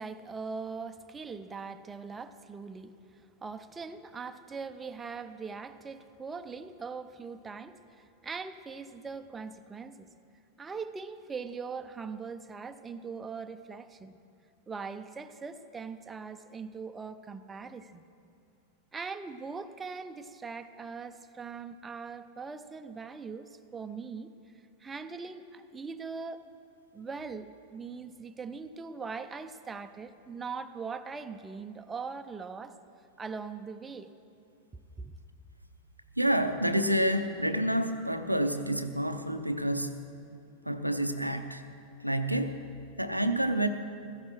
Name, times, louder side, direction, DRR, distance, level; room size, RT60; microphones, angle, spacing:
voice 1, 0.0-10.1 10.6-14.2 14.7-18.0 18.9-24.3 24.8-26.4 26.9-32.8 33.2-34.1 35.0-35.2, right 5 dB, 15° right, 9 dB, 0.6 m, -41 dB
voice 2, 36.2-40.0 40.6-41.7 42.0-42.6 43.0-43.7, right 1 dB, 90° right, 8 dB, 0.6 m, -28 dB
15.5 x 14.0 x 4.5 m, 2.5 s
figure-of-eight pair, 90°, 0 cm